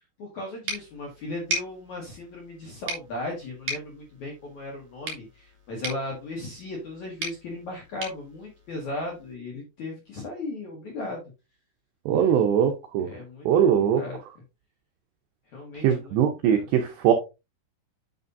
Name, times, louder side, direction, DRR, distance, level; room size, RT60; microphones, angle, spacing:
voice 1, 0.2-11.2 12.1-12.5 13.0-14.2 15.5-16.2 16.5-16.7, left 2 dB, 60° left, 2.0 m, -37 dB
sound 1, 0.7-9.3, right 2 dB, 45° right, 2.9 m, -38 dB
voice 2, 12.1-13.1 13.5-14.0 15.8-17.1, right 9 dB, 80° right, 2.5 m, -21 dB
9.4 x 6.4 x 2.6 m
omnidirectional pair, 6.0 m